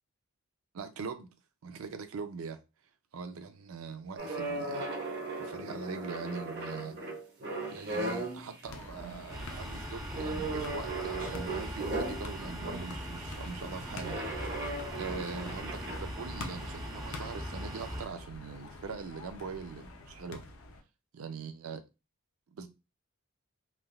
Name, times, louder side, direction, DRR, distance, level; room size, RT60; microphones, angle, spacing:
voice 1, 0.7-1.3 1.6-2.6 3.1-4.9 5.4-7.0 7.7-20.4 21.1-21.8 22.5-22.7, right 5 dB, 80° right, 0.4 m, -42 dB
sound 1, 4.2-8.5 9.0-9.4 10.1-12.9 14.0-16.0, right 2 dB, 50° right, 0.8 m, -37 dB
sound 2, 8.6-20.8, left 2 dB, 75° left, 0.5 m, -46 dB
sound 3, 9.3-18.1, equal, 15° right, 0.5 m, -41 dB
3.2 x 2.3 x 2.3 m
head